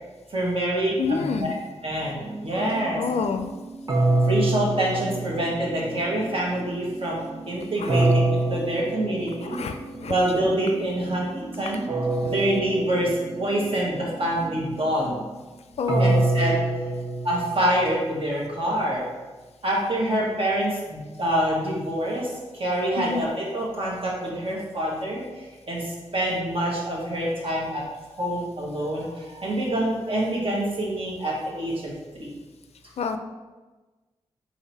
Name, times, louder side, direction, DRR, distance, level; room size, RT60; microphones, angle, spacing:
voice 1, 0.3-1.5 1.8-3.0 4.3-9.6 10.0-11.9 12.2-13.1 13.4-15.2 16.0-16.5 17.2-19.0 19.6-22.3 22.6-25.2 25.7-25.9 26.1-27.8 28.2-32.3, right 1 dB, 55° right, -4 dB, 1.4 m, -26 dB
voice 2, 1.0-1.5 3.0-3.5 7.8-8.1 9.5-10.1 15.8-16.2 23.0-23.2 33.0-33.2, left 5 dB, 65° left, 7 dB, 0.4 m, -28 dB
sound 1, 1.6-16.7 16.9-17.0, right 3 dB, ahead, 0.7 m, -41 dB
sound 2, 3.9-5.9 7.9-9.7 11.9-13.7 15.9-18.1, right 2 dB, 35° right, 0.8 m, -25 dB
3.9 x 3.0 x 4.1 m, 1.2 s
cardioid pair, 50°, 11 cm